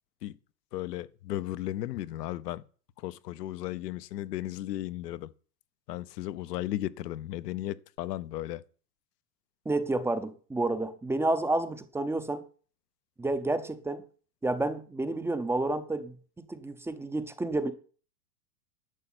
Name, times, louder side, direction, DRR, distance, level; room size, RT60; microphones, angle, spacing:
voice 1, 0.7-2.6 3.0-5.3 5.9-8.6, left 14 dB, 75° left, 0.9 m, -35 dB
voice 2, 9.7-12.4 13.2-14.0 14.4-17.7, right 2 dB, 5° right, 0.6 m, -30 dB
11.5 x 6.8 x 6.0 m
hypercardioid pair, 125°, 50 cm